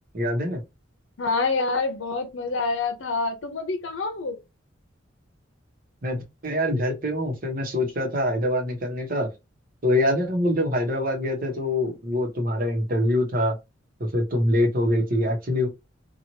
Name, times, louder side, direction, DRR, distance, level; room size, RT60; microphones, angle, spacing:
voice 1, 0.1-0.6 6.0-9.3 9.8-13.5 14.0-15.7, left 1 dB, 50° right, 1.0 m, -24 dB
voice 2, 1.2-4.4, left 3 dB, 85° left, 0.7 m, -27 dB
3.0 x 2.5 x 2.8 m
head